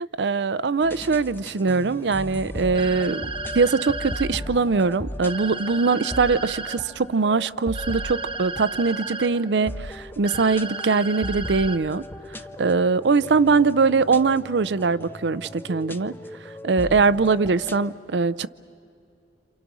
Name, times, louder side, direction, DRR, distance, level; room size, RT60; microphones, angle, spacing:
voice 1, 0.2-12.0 12.6-16.1 16.6-18.5, right 4 dB, 75° right, 17 dB, 0.6 m, -22 dB
sound 1, 0.8-17.9, left 1 dB, 10° left, 0.6 m, -37 dB
sound 2, 2.7-4.3 5.2-6.8 7.7-9.3 10.2-11.8, right 3 dB, 30° right, 1.1 m, -33 dB
28.5 x 28.0 x 6.2 m, 2.6 s
head